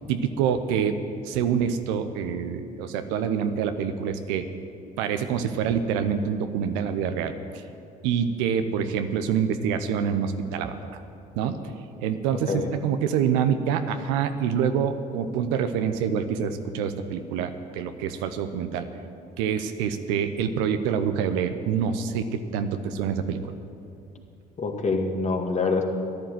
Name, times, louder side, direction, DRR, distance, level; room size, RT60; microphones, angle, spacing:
voice 1, 0.1-1.0 1.2-4.5 5.0-7.3 8.0-11.0 11.4-11.7 12.0-18.9 19.4-23.4, right 7 dB, 75° right, 9 dB, 0.9 m, -26 dB
voice 2, 24.6-25.8, left 4 dB, 40° left, 3 dB, 2.0 m, -25 dB
13.5 x 11.0 x 7.7 m, 2.5 s
hypercardioid pair, 60°, 19 cm